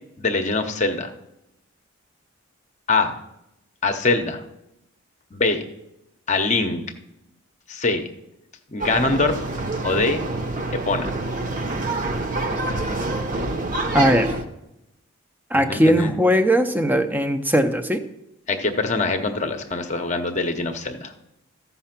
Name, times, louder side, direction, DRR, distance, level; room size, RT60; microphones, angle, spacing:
voice 1, 0.2-1.1 2.9-3.2 3.8-4.4 5.3-5.6 6.3-6.8 7.7-8.1 8.7-9.4 9.8-10.2 10.9-11.1 15.5-16.1 18.5-21.1, left 3 dB, 35° left, 6 dB, 0.7 m, -23 dB
sound 1, 8.8-14.4, right 2 dB, 35° right, 0.9 m, -26 dB
voice 2, 13.9-14.3 15.5-18.0, equal, 10° right, 8 dB, 0.6 m, -19 dB
14.0 x 5.7 x 5.9 m, 0.87 s
head